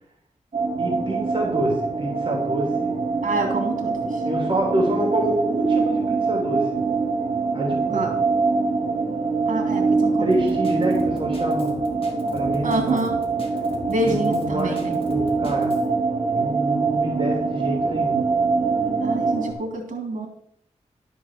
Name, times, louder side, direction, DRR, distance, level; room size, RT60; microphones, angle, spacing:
sound 1, 0.5-19.5, right 4 dB, 55° right, 2.7 m, -24 dB
voice 1, 0.8-2.9 4.3-6.7 7.5-8.0 10.2-11.7 12.3-13.0 14.0-15.8 16.3-18.2, right 1 dB, 40° right, -1 dB, 3.3 m, -27 dB
voice 2, 3.2-4.2 7.9-8.2 9.5-10.3 12.6-13.2 13.9-15.0 19.0-20.3, right 2 dB, 85° right, 2 dB, 2.5 m, -27 dB
Drum kit, 10.3-15.9, left 2 dB, 45° left, 2.4 m, -41 dB
12.0 x 5.4 x 6.6 m, 0.71 s
wide cardioid pair, 110°, 13 cm